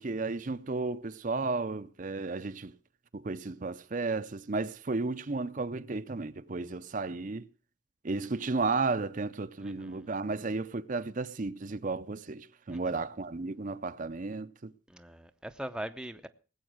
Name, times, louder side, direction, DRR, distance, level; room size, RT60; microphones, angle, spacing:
voice 1, 0.0-2.7 3.1-7.5 8.0-14.7, right 3 dB, 40° right, 0.6 m, -33 dB
voice 2, 9.6-10.1 12.7-12.8 14.9-16.3, right 1 dB, 5° right, 0.6 m, -41 dB
19.0 x 8.2 x 6.2 m
head